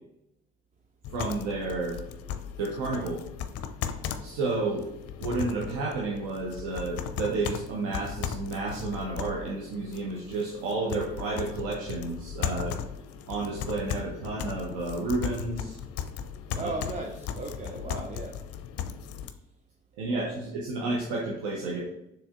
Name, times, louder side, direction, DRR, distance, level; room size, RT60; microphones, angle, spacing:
sound 1, 1.0-19.3, left 8 dB, 50° left, 0.5 m, -37 dB
voice 1, 1.1-2.0 2.6-3.2 4.2-4.9 5.2-12.7 13.3-15.8 16.6-16.7 17.9-18.0 20.0-21.8, right 3 dB, 65° right, -2 dB, 0.8 m, -31 dB
voice 2, 16.6-18.4 20.0-20.4, right 2 dB, 20° right, 1 dB, 0.5 m, -37 dB
6.8 x 3.1 x 2.4 m, 0.86 s
figure-of-eight pair, 45°, 32 cm